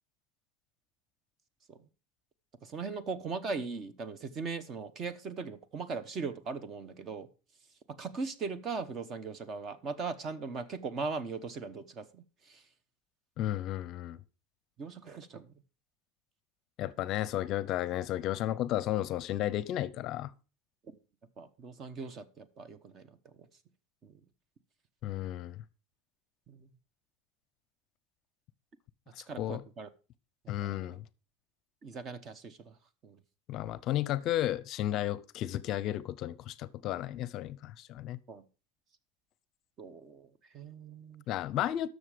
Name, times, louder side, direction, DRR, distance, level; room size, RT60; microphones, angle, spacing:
voice 1, 2.6-7.3 7.9-12.6 14.8-15.5 21.4-23.3 24.0-24.2 26.5-26.7 29.3-29.9 30.6-31.0 31.8-32.7 33.0-33.2 38.3-38.4 39.8-41.2, right 4 dB, 35° right, 1.0 m, -39 dB
voice 2, 13.4-14.2 16.8-20.3 25.0-25.6 29.2-29.6 30.5-31.0 33.5-38.2 41.3-41.9, left 13 dB, 45° left, 0.6 m, -33 dB
12.5 x 6.5 x 5.0 m
supercardioid pair, 135°, 0 cm